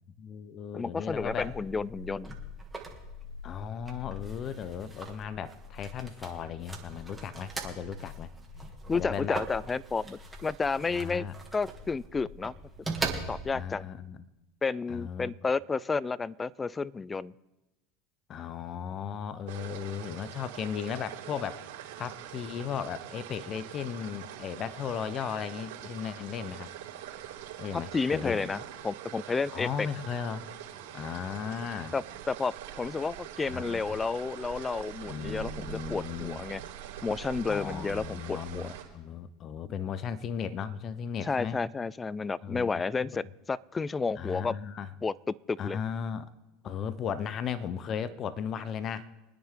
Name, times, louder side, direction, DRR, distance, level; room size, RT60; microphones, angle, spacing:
voice 1, 0.2-1.5 3.4-8.3 8.9-9.4 10.9-11.3 13.5-14.2 14.9-15.3 18.3-21.6 22.0-26.7 27.6-28.5 29.5-30.4 30.9-31.9 33.5-33.8 35.1-36.4 37.5-41.6 42.4-43.3 44.2-44.9 45.6-46.3 46.6-49.1, left 7 dB, 40° left, 15 dB, 0.8 m, -36 dB
voice 2, 0.7-2.4 8.9-11.3 11.5-12.5 13.3-13.9 14.6-17.3 27.9-29.9 31.9-36.6 37.0-38.8 41.2-44.6 45.0-45.8, left 4 dB, 20° left, 22 dB, 0.4 m, -31 dB
sound 1, 1.1-13.7, right 2 dB, 15° right, 2.5 m, -41 dB
sound 2, 19.5-38.8, right 11 dB, 70° right, 3.4 m, -44 dB
24.5 x 9.8 x 3.8 m, 1.0 s
hypercardioid pair, 95°, 0 cm